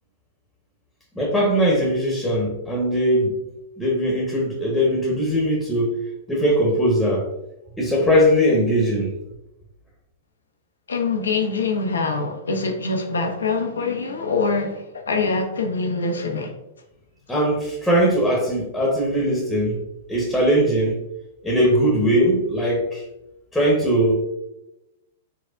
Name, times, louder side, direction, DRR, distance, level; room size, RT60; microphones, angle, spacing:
voice 1, 1.1-3.4 3.8-5.9 6.3-7.3 7.8-9.1 17.3-19.8 20.1-21.0 21.4-23.0 23.5-24.2, equal, 5° left, -3 dB, 0.9 m, -20 dB
voice 2, 10.9-16.5, left 4 dB, 85° left, 3 dB, 0.6 m, -24 dB
4.5 x 2.1 x 2.5 m, 0.93 s
hypercardioid pair, 110°, 0 cm